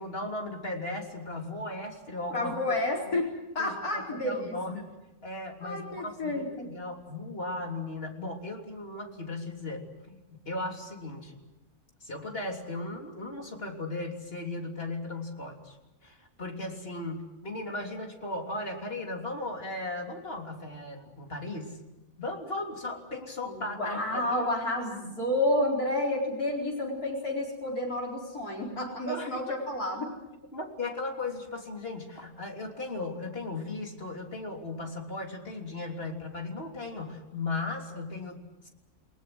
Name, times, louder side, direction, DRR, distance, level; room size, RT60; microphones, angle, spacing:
voice 1, 0.0-2.7 3.1-3.2 3.6-4.9 5.2-11.4 12.0-15.8 16.0-21.8 22.2-24.2 29.1-29.4 30.5-38.7, left 2 dB, 40° left, 2 dB, 3.6 m, -37 dB
voice 2, 2.3-4.5 5.6-6.7 23.5-30.1, left 1 dB, 85° left, -2 dB, 5.0 m, -30 dB
29.5 x 19.5 x 7.8 m, 1.0 s
omnidirectional pair, 1.6 m